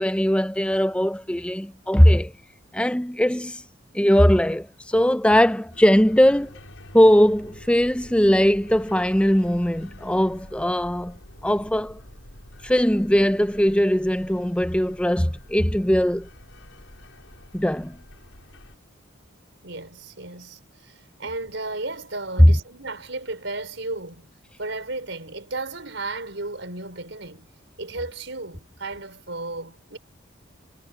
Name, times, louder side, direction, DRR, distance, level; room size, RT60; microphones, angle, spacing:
voice 1, 0.0-2.3 2.7-3.6 3.9-6.5 6.9-11.1 11.4-12.0 12.6-16.3 17.5-18.0 22.4-22.5, equal, 5° left, 0.7 m, -19 dB
sound 1, 5.7-18.8, left 1 dB, 85° left, 6.5 m, -46 dB
voice 2, 19.6-24.3 24.6-27.5 27.8-30.0, right 2 dB, 70° right, 4.7 m, -34 dB
head